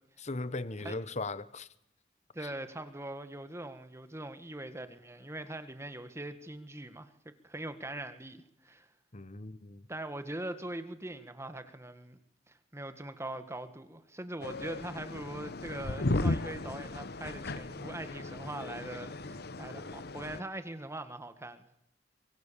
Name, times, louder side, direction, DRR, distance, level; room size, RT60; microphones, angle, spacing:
voice 1, 0.2-1.7 2.4-2.5 9.1-9.9, left 2 dB, 40° left, 1.2 m, -38 dB
voice 2, 2.3-7.1 7.4-8.9 9.9-12.2 12.5-21.6, right 1 dB, 15° right, 1.7 m, -42 dB
sound 1, 14.4-20.4, left 2 dB, 60° left, 1.1 m, -36 dB
24.5 x 24.5 x 7.0 m
head